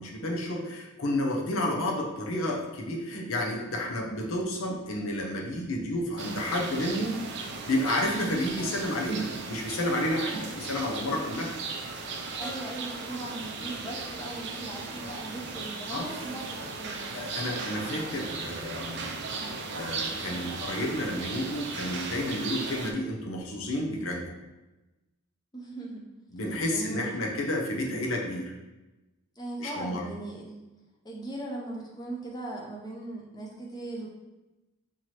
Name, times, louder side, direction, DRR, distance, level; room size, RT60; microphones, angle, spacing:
voice 1, 0.0-7.2 7.6-11.5 15.9-16.1 16.9-19.1 19.7-24.2 26.3-28.5 29.6-30.1, left 1 dB, 70° left, -1 dB, 0.7 m, -31 dB
sound 1, 6.2-22.9, right 4 dB, 50° right, 0.4 m, -37 dB
voice 2, 12.4-17.0 25.5-26.0 26.7-27.3 29.4-30.6 31.0-34.1, right 2 dB, 20° left, -2 dB, 0.6 m, -39 dB
4.5 x 2.9 x 2.9 m, 1.1 s
head